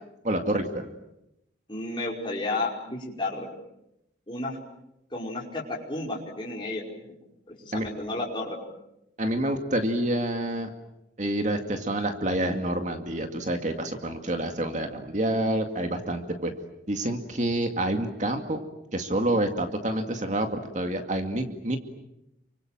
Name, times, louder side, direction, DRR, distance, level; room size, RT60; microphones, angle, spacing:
voice 1, 0.2-0.9 7.7-7.9 9.2-10.7 11.2-16.6 16.9-18.6 18.9-21.8, right 1 dB, 40° right, 5 dB, 2.2 m, -28 dB
voice 2, 1.7-3.5 4.3-4.6 5.1-6.8 7.5-8.6, left 2 dB, 25° left, -3 dB, 5.3 m, -32 dB
29.5 x 25.0 x 7.7 m, 0.85 s
head